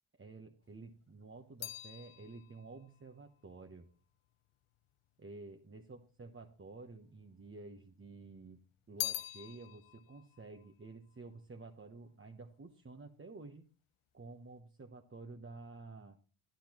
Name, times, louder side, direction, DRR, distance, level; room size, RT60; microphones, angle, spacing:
voice 1, 0.1-3.9 5.2-8.6 8.9-13.7 14.1-16.2, right 3 dB, 25° right, 4 dB, 1.0 m, -51 dB
sound 1, 0.6-5.1 5.8-6.7 6.9-8.1 8.4-11.9 12.2-12.7, left 13 dB, 85° left, 0.7 m, -46 dB
11.5 x 10.0 x 3.0 m, 0.38 s
cardioid pair, 75°, 48 cm